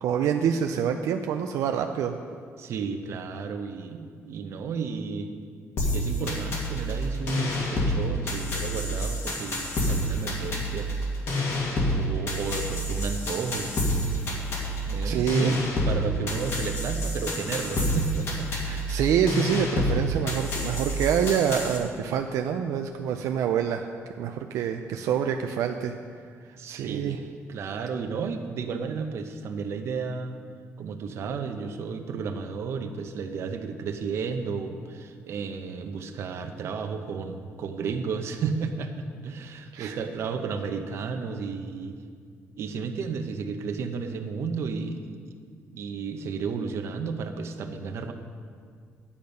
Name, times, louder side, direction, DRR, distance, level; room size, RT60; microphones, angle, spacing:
voice 1, 0.0-2.2 15.0-15.6 18.7-23.9 24.2-25.9 26.7-27.2 39.7-40.0, right 8 dB, 85° right, 5 dB, 0.5 m, -26 dB
voice 2, 2.6-5.3 5.9-10.9 11.8-13.7 14.9-15.6 15.8-18.5 26.6-27.2 27.5-30.4 30.8-42.0 42.6-45.0 45.7-48.1, right 5 dB, 55° right, 6 dB, 0.8 m, -33 dB
sound 1, 5.8-21.8, equal, 55° left, 1.9 m, -28 dB
10.5 x 8.6 x 5.3 m, 2.1 s
cardioid pair, 155°, 5 cm